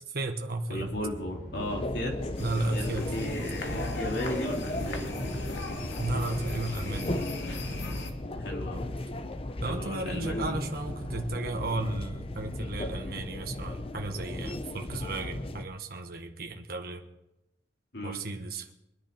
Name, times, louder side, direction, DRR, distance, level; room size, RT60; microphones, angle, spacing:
voice 1, 0.1-0.9 2.4-3.3 6.0-7.1 9.6-17.0 18.0-18.7, right 2 dB, 60° right, 3 dB, 1.3 m, -34 dB
voice 2, 0.7-2.2 2.7-5.4 8.4-8.9 9.7-10.7 17.9-18.2, left 1 dB, 70° left, 0 dB, 3.4 m, -35 dB
sound 1, 0.7-12.8, equal, 50° left, 3.6 m, -47 dB
sound 2, 1.6-15.7, left 1 dB, 30° left, 0.7 m, -36 dB
sound 3, 2.4-8.1, left 1 dB, 90° left, 2.3 m, -37 dB
23.5 x 10.5 x 4.5 m, 0.91 s
head